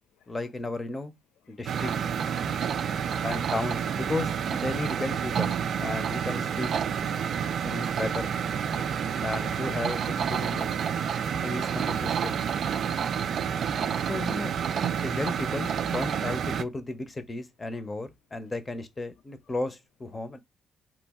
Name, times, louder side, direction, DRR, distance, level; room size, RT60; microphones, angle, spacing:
voice 1, 0.3-1.1 1.5-1.9 3.2-6.7 7.6-8.3 9.2-10.8 11.4-12.4 14.1-14.5 15.0-20.4, left 2 dB, 25° left, 0.7 m, -34 dB
sound 1, 1.7-16.6, right 7 dB, 60° right, 0.3 m, -29 dB
voice 2, 2.3-3.3 7.1-7.2 7.5-7.9 11.3-11.6 14.0-14.1, left 7 dB, 85° left, 0.4 m, -54 dB
3.1 x 2.3 x 3.5 m
cardioid pair, 90°, 0 cm